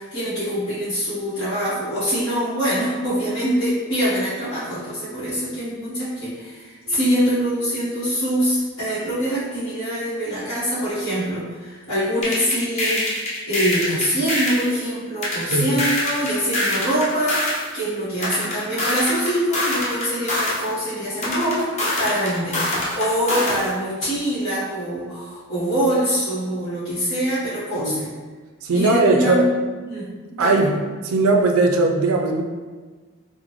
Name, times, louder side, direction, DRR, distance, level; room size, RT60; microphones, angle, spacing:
voice 1, 0.0-13.2 13.5-22.6 22.9-28.1 28.7-29.5 29.8-30.7, equal, 70° left, -15 dB, 1.2 m, -24 dB
sound 1, 12.2-14.7 15.2-17.7 18.2-20.7 21.2-23.7, left 1 dB, 30° left, 0.6 m, -24 dB
voice 2, 15.5-15.8 27.8-28.0 28.6-29.5 30.4-30.7 31.0-32.4, right 2 dB, 85° right, 3 dB, 0.4 m, -19 dB
3.6 x 2.1 x 3.0 m, 1.4 s
head